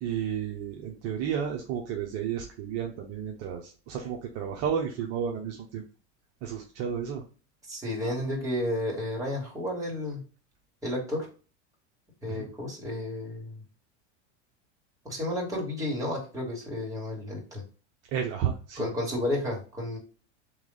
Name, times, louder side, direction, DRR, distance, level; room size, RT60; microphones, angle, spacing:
voice 1, 0.0-5.8 6.4-7.2 12.3-12.5 18.1-18.9, right 8 dB, 45° right, 1 dB, 0.8 m, -32 dB
voice 2, 7.7-10.2 10.8-11.3 12.2-13.6 15.0-17.6 18.8-20.0, left 1 dB, 10° right, -3 dB, 2.3 m, -32 dB
3.6 x 3.1 x 3.9 m, 0.36 s
supercardioid pair, 120°, 35 cm